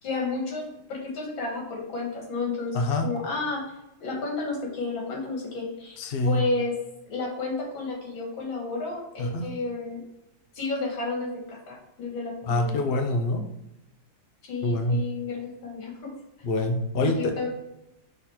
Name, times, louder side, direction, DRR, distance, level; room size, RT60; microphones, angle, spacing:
voice 1, 0.0-2.8 3.0-3.6 4.0-6.8 7.1-10.0 10.5-12.8 14.5-16.1 17.0-17.5, left 3 dB, 90° left, -1 dB, 2.5 m, -31 dB
voice 2, 2.7-3.1 6.0-6.4 9.2-9.5 12.5-13.4 14.6-15.0 16.4-17.3, left 1 dB, 60° left, 4 dB, 0.6 m, -25 dB
6.1 x 4.0 x 4.4 m, 0.88 s
omnidirectional pair, 2.1 m